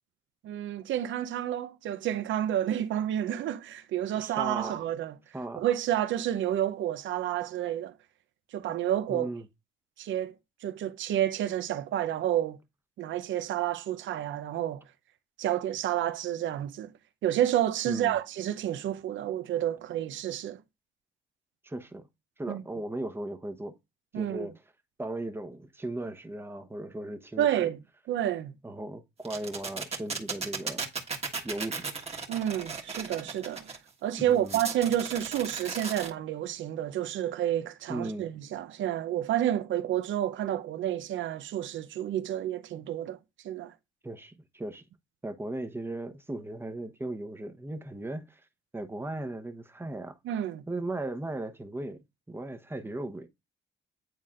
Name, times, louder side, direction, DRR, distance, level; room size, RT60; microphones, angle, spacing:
voice 1, 0.4-5.2 5.6-7.9 8.5-9.3 10.0-10.3 10.6-12.6 13.0-14.8 15.4-16.9 17.2-20.6 22.5-22.6 24.1-24.5 27.4-27.8 28.1-28.5 32.3-33.7 34.0-43.2 43.4-43.7 50.2-50.6, right 11 dB, 75° right, 0.7 m, -30 dB
voice 2, 4.1-4.8 5.3-5.6 9.1-9.5 17.9-18.2 21.6-22.1 22.4-23.7 24.1-24.5 25.0-27.7 28.6-30.9 31.4-31.9 34.2-34.6 37.9-38.3 44.0-44.8 45.2-48.4 48.7-50.2 50.7-52.0 52.3-53.3, right 1 dB, 10° right, 0.9 m, -37 dB
sound 1, 29.2-33.8 34.5-36.1, right 4 dB, 30° right, 1.4 m, -35 dB
9.4 x 4.1 x 2.5 m
cardioid pair, 90°, 20 cm